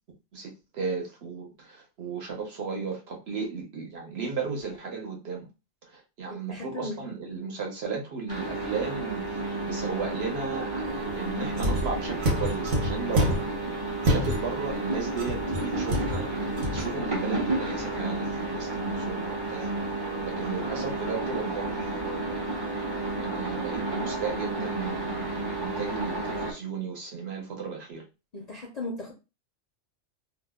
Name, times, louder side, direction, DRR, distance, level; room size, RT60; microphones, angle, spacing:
voice 1, 0.3-5.5 5.9-19.8 20.2-22.5 23.2-28.0, right 5 dB, 60° right, 1.0 m, -35 dB
voice 2, 6.3-7.0 28.3-29.1, left 2 dB, 50° left, 0.5 m, -37 dB
sound 1, 8.3-26.5, right 2 dB, 25° right, 0.6 m, -31 dB
sound 2, 11.5-13.6 14.0-14.7 15.2-16.9, equal, 85° right, 1.1 m, -28 dB
2.6 x 2.0 x 3.4 m
omnidirectional pair, 1.2 m